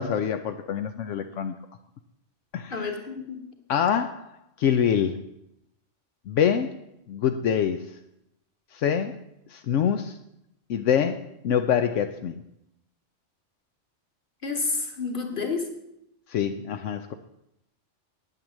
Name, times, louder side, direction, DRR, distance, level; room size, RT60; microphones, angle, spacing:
voice 1, 0.0-1.5 2.5-2.9 3.7-4.3 4.6-5.2 6.3-6.7 7.1-7.8 8.7-9.2 9.5-10.2 10.7-12.4 16.3-17.1, left 8 dB, 80° left, 7 dB, 1.0 m, -25 dB
voice 2, 2.7-3.4 14.4-15.6, left 4 dB, 45° left, 4 dB, 1.9 m, -29 dB
9.6 x 9.0 x 7.3 m, 0.81 s
omnidirectional pair, 1.3 m